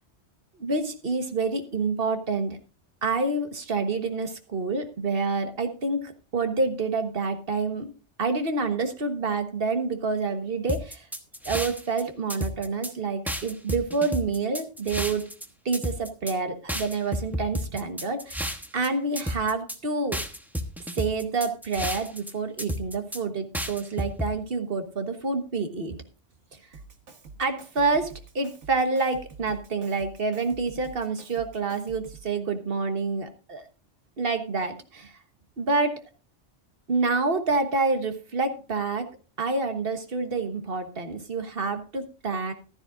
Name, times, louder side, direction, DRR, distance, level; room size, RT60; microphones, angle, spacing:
voice 1, 0.6-2.6 3.0-7.9 8.2-11.1 11.4-15.2 15.6-20.2 21.0-26.0 27.4-33.6 34.2-35.1 35.6-36.0 36.9-39.1 39.4-42.5, right 3 dB, 55° right, 7 dB, 1.5 m, -28 dB
sound 1, 10.7-12.0 12.3-12.9 13.3-15.5 15.7-16.3 16.7-18.9 19.2-19.8 20.1-22.3 22.6-23.2 23.5-24.3, equal, ahead, 0.9 m, -31 dB
Drum kit, 26.7-32.3, right 4 dB, 75° right, 1.7 m, -47 dB
15.0 x 12.5 x 2.5 m, 0.34 s
omnidirectional pair, 1.2 m